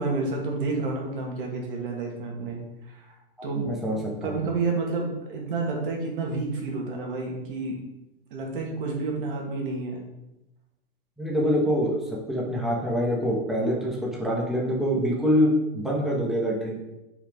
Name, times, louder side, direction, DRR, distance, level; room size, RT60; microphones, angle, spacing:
voice 1, 0.0-2.6 2.9-3.1 3.4-3.7 4.2-7.8 8.3-10.0, right 3 dB, 65° right, 0 dB, 2.1 m, -29 dB
voice 2, 3.6-4.4 11.2-16.8, equal, ahead, -3 dB, 1.7 m, -25 dB
6.9 x 4.9 x 3.8 m, 0.93 s
hypercardioid pair, 105°, 29 cm